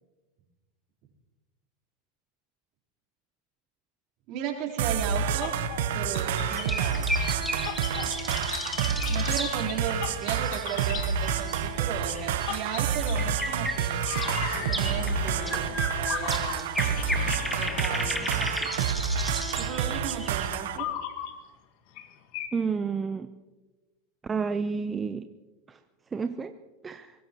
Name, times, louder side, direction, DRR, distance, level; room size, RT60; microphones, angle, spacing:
voice 1, 4.3-5.5 5.9-7.1 7.9-8.1 9.1-14.0 14.5-16.9 17.5-18.7 19.5-20.9, right 8 dB, 55° right, -2 dB, 3.9 m, -36 dB
sound 1, 4.8-20.8, right 7 dB, 75° right, 1.1 m, -29 dB
sound 2, 5.3-11.5 12.1-13.7 14.0-19.6 20.5-21.3 22.0-22.1 22.3-22.5, left 10 dB, 60° left, 1.6 m, -38 dB
sound 3, 6.5-11.8 12.1-20.5, equal, 5° left, 1.8 m, -35 dB
voice 2, 22.5-23.3 24.3-25.3 25.7-25.8 26.1-26.5 26.8-27.1, right 5 dB, 20° right, 9 dB, 0.7 m, -30 dB
23.0 x 20.0 x 3.1 m, 1.2 s
hypercardioid pair, 100°, 0 cm